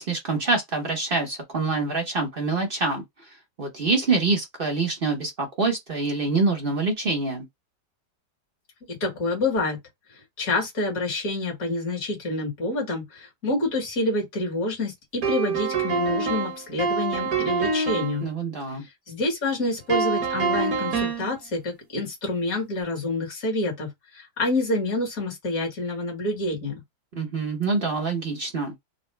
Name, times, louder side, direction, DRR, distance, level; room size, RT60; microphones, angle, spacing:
voice 1, 0.0-3.0 3.6-7.5 18.2-18.8 27.1-28.7, right 3 dB, 40° right, 0.8 m, -25 dB
voice 2, 8.9-9.8 10.4-18.3 19.1-26.7, left 2 dB, 55° left, 2.1 m, -27 dB
sound 1, 15.2-18.2 19.9-21.3, right 4 dB, 60° right, 1.4 m, -25 dB
4.1 x 2.1 x 3.2 m
omnidirectional pair, 1.9 m